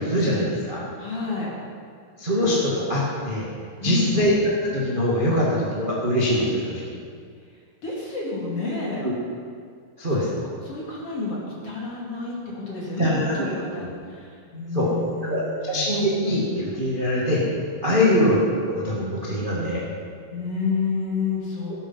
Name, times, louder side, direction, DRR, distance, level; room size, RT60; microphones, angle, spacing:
voice 1, 0.0-0.8 2.2-3.5 3.8-4.3 4.6-6.8 9.0-9.1 10.0-10.3 13.0-13.9 14.7-14.9 15.2-17.4 17.8-18.4 18.7-19.8, left 1 dB, 20° right, -6 dB, 1.4 m, -23 dB
voice 2, 1.0-1.6 3.8-4.2 7.8-9.1 10.4-11.4 11.6-15.9 17.9-18.2 20.3-21.7, left 4 dB, 40° left, -5 dB, 3.2 m, -29 dB
17.0 x 8.5 x 5.8 m, 2.1 s
omnidirectional pair, 4.3 m